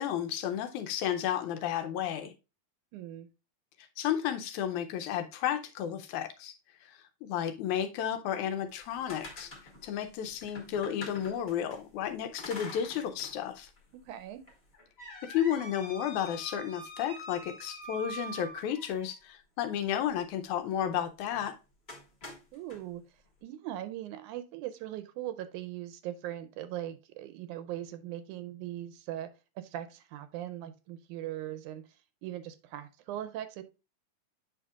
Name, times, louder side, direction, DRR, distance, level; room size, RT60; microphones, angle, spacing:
voice 1, 0.0-2.3 4.0-6.5 6.8-9.5 9.8-13.7 15.3-21.6, left 10 dB, 80° left, 1.9 m, -32 dB
voice 2, 2.9-3.3 14.1-14.4 22.5-23.0 23.4-29.3 29.6-31.8 32.2-33.6, right 12 dB, 80° right, 1.9 m, -40 dB
sound 1, 8.7-11.8 12.4-13.4 13.8-13.9 14.5-19.1 21.3-21.5 21.9-22.8, equal, 30° left, 1.2 m, -45 dB
8.7 x 5.5 x 2.3 m
omnidirectional pair, 3.7 m